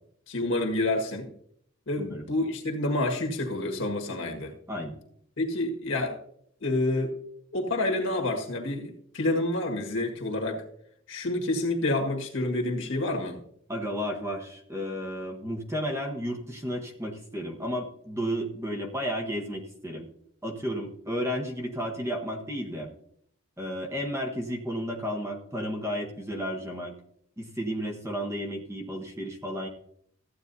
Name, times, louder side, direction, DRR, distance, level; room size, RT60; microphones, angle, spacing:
voice 1, 0.3-1.3 1.9-4.5 5.4-6.2 6.6-7.1 7.5-10.6 11.1-13.4, left 2 dB, 60° left, 2 dB, 1.7 m, -28 dB
voice 2, 13.7-20.1 20.4-22.9 23.6-26.9 27.4-29.7, equal, 15° right, 2 dB, 1.1 m, -33 dB
14.5 x 8.9 x 2.7 m, 0.68 s
head